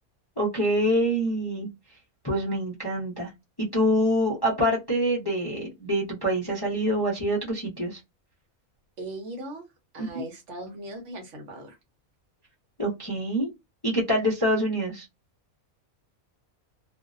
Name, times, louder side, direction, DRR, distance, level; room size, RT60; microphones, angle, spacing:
voice 1, 0.4-1.7 2.2-3.3 3.6-8.0 10.0-10.2 12.8-13.5 13.8-15.0, equal, 25° left, 0.5 m, -25 dB
voice 2, 9.0-9.6 9.9-11.8, right 1 dB, 60° right, 1.1 m, -38 dB
2.6 x 2.1 x 2.4 m
omnidirectional pair, 1.5 m